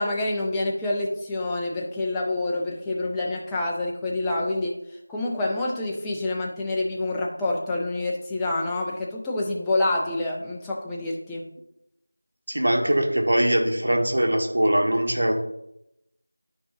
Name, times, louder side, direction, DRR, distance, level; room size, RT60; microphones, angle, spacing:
voice 1, 0.0-4.8 5.1-11.5, left 2 dB, 5° left, -4 dB, 0.4 m, -27 dB
voice 2, 12.5-15.3, right 1 dB, 60° right, 2 dB, 1.5 m, -22 dB
12.5 x 4.8 x 2.7 m, 0.84 s
figure-of-eight pair, 175°, 0 cm